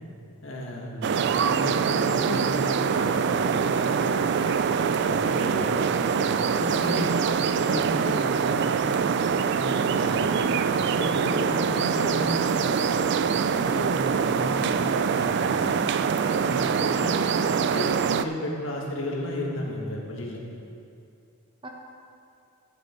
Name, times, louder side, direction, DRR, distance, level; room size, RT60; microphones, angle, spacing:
voice 1, 0.4-4.5 5.0-5.7 6.1-7.3 7.5-8.9 9.5-10.4 10.6-15.7 16.4-17.1 17.4-20.4, left 1 dB, 70° left, -2 dB, 1.8 m, -34 dB
sound 1, 1.0-18.2, right 6 dB, 55° right, 0.3 m, -24 dB
voice 2, 6.8-7.2 10.0-10.3 16.8-17.7 21.6-21.7, right 1 dB, 25° right, 0 dB, 1.0 m, -40 dB
12.0 x 8.1 x 4.5 m, 2.5 s
head